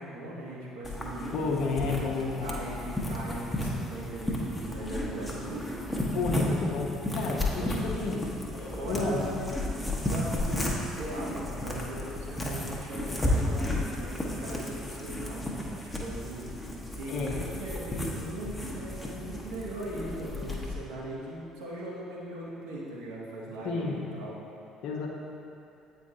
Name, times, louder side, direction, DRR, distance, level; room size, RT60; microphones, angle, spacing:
voice 1, 0.0-1.3 2.4-5.7 7.6-8.0 8.6-9.4 9.7-16.5 17.0-24.4, right 1 dB, 65° right, -4 dB, 1.0 m, -39 dB
sound 1, 0.8-20.8, left 1 dB, 10° left, 0.9 m, -33 dB
voice 2, 1.3-2.5 6.1-9.3 17.1-17.4 23.6-24.0 24.8-25.1, left 3 dB, 55° left, -2 dB, 0.8 m, -31 dB
8.3 x 4.5 x 2.7 m, 2.7 s
figure-of-eight pair, 55°, 0 cm